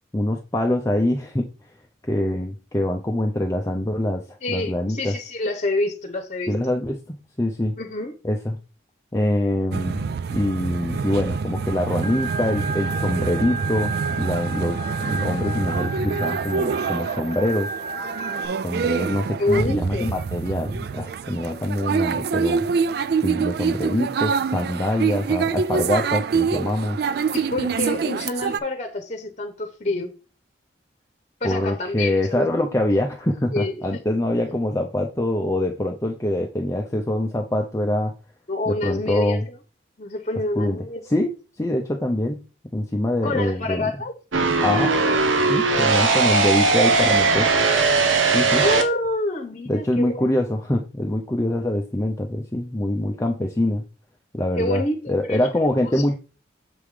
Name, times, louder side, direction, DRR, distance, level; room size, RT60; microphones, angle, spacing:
voice 1, 0.1-1.5 2.1-5.2 6.5-7.8 8.2-8.6 9.1-17.7 18.6-22.7 23.2-27.0 31.4-38.1 38.7-39.5 40.6-40.8 41.1-42.4 42.7-43.9 44.6-45.0 45.5-47.5 48.3-48.7 49.7-53.8 54.3-54.8 55.1-56.1, left 1 dB, 15° left, 0.5 m, -24 dB
voice 2, 4.4-6.7 7.8-8.1 19.4-20.1 27.3-30.1 31.4-32.5 33.5-34.0 38.5-39.6 40.0-41.0 43.2-44.1 45.8-46.4 48.3-50.3 54.6-55.4, left 2 dB, 35° left, 0.9 m, -27 dB
sound 1, 9.7-28.6, right 5 dB, 55° right, 0.3 m, -26 dB
Organ, 12.0-18.5, right 3 dB, 35° right, 0.7 m, -32 dB
sound 2, 44.3-48.8, right 4 dB, 85° right, 1.0 m, -19 dB
6.9 x 3.6 x 4.9 m
head